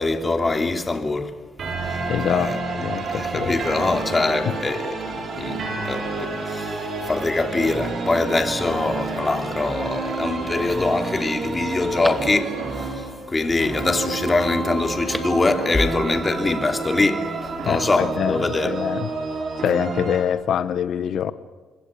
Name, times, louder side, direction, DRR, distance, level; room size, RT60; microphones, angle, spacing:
voice 1, 0.0-1.3 2.3-2.6 3.1-18.8, left 3 dB, 25° left, 2.9 m, -23 dB
sound 1, 1.6-20.2, right 3 dB, 55° right, 6.6 m, -29 dB
voice 2, 2.1-3.6 4.5-4.6 17.6-18.4 18.6-19.1 19.6-21.3, left 9 dB, 70° left, 0.9 m, -24 dB
Telephone, 11.3-12.8 14.8-15.5 15.8-15.9, equal, ahead, 2.3 m, -37 dB
27.0 x 21.0 x 8.5 m
cardioid pair, 90°, 0 cm